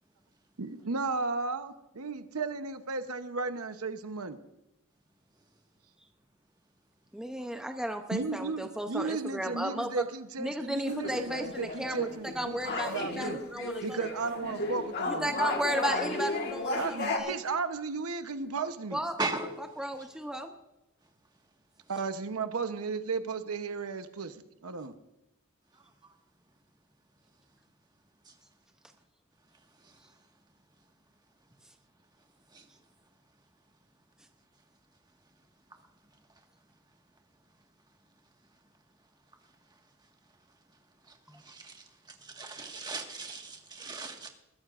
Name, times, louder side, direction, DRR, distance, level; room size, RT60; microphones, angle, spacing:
voice 1, 0.6-4.4 8.1-13.4 13.8-15.4 16.8-19.0 21.9-24.9, right 4 dB, 85° right, 0.9 m, -34 dB
voice 2, 7.1-9.9 10.4-14.0 15.1-17.4 18.9-19.2 19.6-20.5 41.3-41.4, right 1 dB, 5° right, 0.6 m, -34 dB
sound 1, 10.9-17.2, left 3 dB, 50° left, 1.5 m, -34 dB
voice 3, 19.2-19.5 42.4-44.3, right 3 dB, 20° right, 1.6 m, -35 dB
21.0 x 14.0 x 2.5 m
head